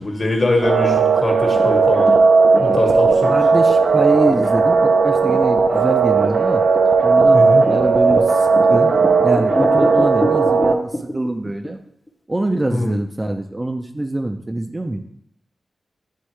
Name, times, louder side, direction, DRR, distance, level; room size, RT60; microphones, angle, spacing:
voice 1, 0.0-2.1 2.6-3.3 7.3-7.7 12.7-12.9, left 2 dB, 40° left, 2 dB, 1.3 m, -22 dB
sound 1, 0.6-10.7, right 4 dB, 80° right, 0.5 m, -15 dB
sound 2, 1.4-11.7 12.1-12.2, left 1 dB, 20° left, 0.7 m, -27 dB
voice 2, 3.3-6.6 7.0-8.9 9.2-11.8 12.3-15.0, right 1 dB, 20° right, 5 dB, 0.4 m, -24 dB
9.3 x 3.6 x 3.2 m, 0.70 s
wide cardioid pair, 115°, 0 cm